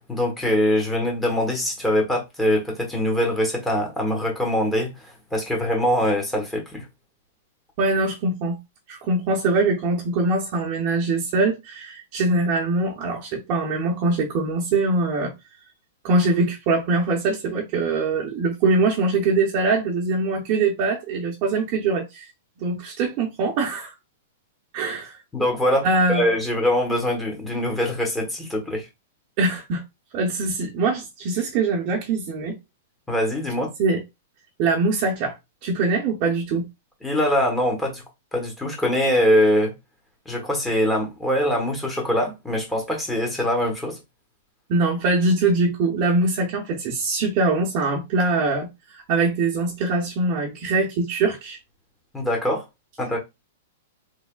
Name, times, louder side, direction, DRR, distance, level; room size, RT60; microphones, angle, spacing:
voice 1, 0.1-4.9 5.3-6.8 25.3-28.9 33.1-33.7 37.0-38.0 38.3-39.7 40.3-44.0 52.1-52.6 53.0-53.2, equal, 5° left, 1.1 m, -23 dB
voice 2, 7.8-8.6 8.9-15.3 16.0-22.2 22.6-23.9 24.7-25.2 25.8-26.3 29.4-29.8 30.1-32.6 33.8-34.0 34.6-35.3 35.6-36.7 44.7-51.6, right 3 dB, 40° right, 0.7 m, -23 dB
3.4 x 3.2 x 2.3 m
hypercardioid pair, 150°, 0 cm